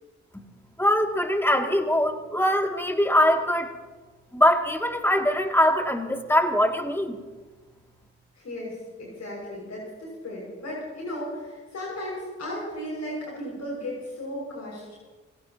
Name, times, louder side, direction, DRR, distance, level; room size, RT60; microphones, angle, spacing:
voice 1, 0.8-3.7 4.3-7.2, left 1 dB, 5° left, 2 dB, 2.7 m, -22 dB
voice 2, 8.3-15.0, equal, 65° left, -4 dB, 6.6 m, -35 dB
27.5 x 17.0 x 3.0 m, 1.3 s
supercardioid pair, 45°, 30 cm